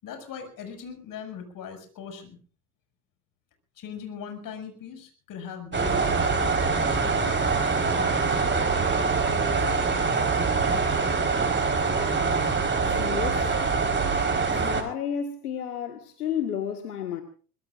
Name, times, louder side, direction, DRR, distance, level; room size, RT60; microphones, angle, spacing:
voice 1, 0.0-2.4 3.8-7.0, left 7 dB, 45° left, 6.5 m, -40 dB
sound 1, 5.7-14.8, right 4 dB, 25° right, 4.5 m, -24 dB
voice 2, 12.9-13.5 14.6-17.2, left 8 dB, 80° left, 1.8 m, -31 dB
24.0 x 21.0 x 2.6 m
figure-of-eight pair, 70°, 45 cm